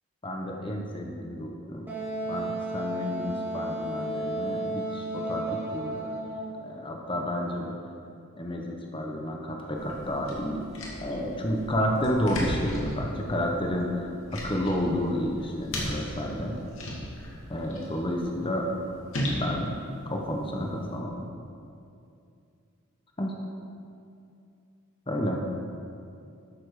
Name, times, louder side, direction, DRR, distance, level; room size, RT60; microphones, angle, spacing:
voice 1, 0.2-1.9 2.3-6.1 6.6-7.7 8.4-10.6 11.0-16.6 17.5-18.7 19.2-21.2 23.2-23.4 25.1-25.4, equal, 25° left, 1 dB, 0.9 m, -31 dB
Wind instrument woodwind instrument, 1.9-6.6, right 1 dB, 10° right, 1.7 m, -33 dB
sound 1, 9.7-21.0, equal, 75° left, 2.3 m, -37 dB
12.5 x 6.9 x 4.9 m, 2.5 s
head